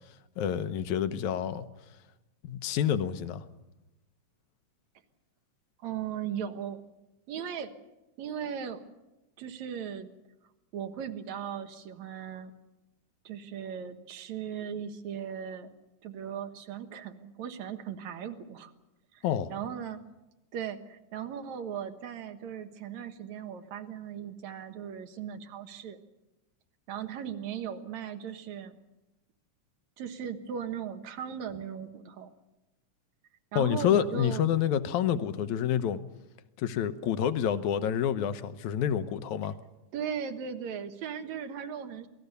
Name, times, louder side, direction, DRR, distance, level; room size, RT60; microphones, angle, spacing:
voice 1, 0.4-1.7 2.4-3.5 19.2-19.5 33.6-36.0 36.6-39.6, left 9 dB, 75° left, 11 dB, 2.3 m, -28 dB
voice 2, 5.8-6.8 7.3-7.8 8.2-8.8 9.4-10.1 10.7-12.5 13.2-15.7 16.0-18.7 19.1-20.0 20.5-26.0 26.9-28.8 30.0-32.3 33.5-34.4 39.9-42.1, right 8 dB, 70° right, 8 dB, 2.6 m, -38 dB
27.0 x 19.0 x 6.9 m, 1.0 s
omnidirectional pair, 3.6 m